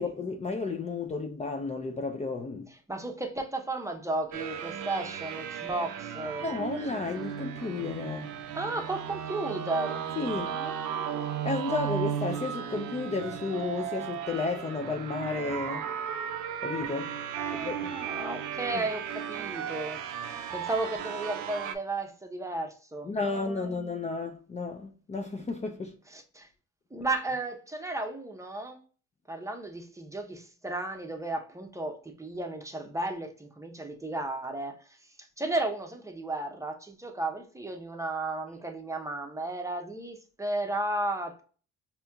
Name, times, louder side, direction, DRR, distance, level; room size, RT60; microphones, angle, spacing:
voice 1, 0.0-2.7 6.4-8.3 10.2-10.6 11.4-15.9 16.6-17.1 17.5-17.9 18.7-18.8 23.0-25.9, left 3 dB, 25° left, 0.4 m, -32 dB
voice 2, 2.7-6.7 8.5-10.1 10.5-11.3 17.4-20.0 20.5-23.9 26.1-26.5 26.9-28.8 29.3-34.8 35.2-41.4, right 2 dB, 10° right, 0.7 m, -34 dB
sound 1, 4.3-21.8, right 8 dB, 80° right, 0.5 m, -35 dB
4.2 x 2.8 x 2.3 m
cardioid pair, 90°, 30 cm